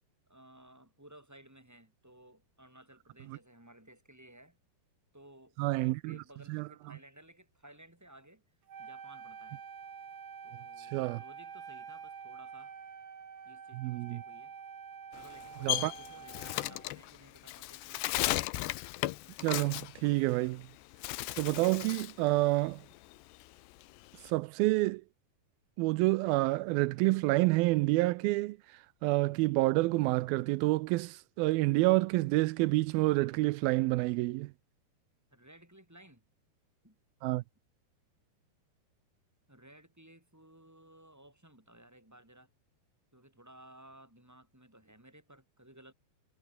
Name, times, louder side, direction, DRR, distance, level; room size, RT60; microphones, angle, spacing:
voice 1, 0.3-4.6 5.1-8.4 8.8-9.6 10.4-12.7 13.4-14.5 15.1-18.1 35.3-36.2 36.8-37.0 39.5-42.5 43.1-45.9, right 1 dB, 5° right, 5.9 m, -57 dB
voice 2, 5.6-6.2 6.5-6.7 10.8-11.2 13.7-14.2 15.6-15.9 19.4-20.7 21.4-22.9 24.2-25.0 25.8-34.5 37.2-37.4, right 21 dB, 90° right, 2.1 m, -28 dB
Wind instrument woodwind instrument, 8.7-17.0, right 7 dB, 55° right, 5.1 m, -47 dB
Bird, 15.1-20.6 20.9-22.2 22.6-24.3, left 18 dB, 85° left, 3.0 m, -36 dB
omnidirectional pair, 4.8 m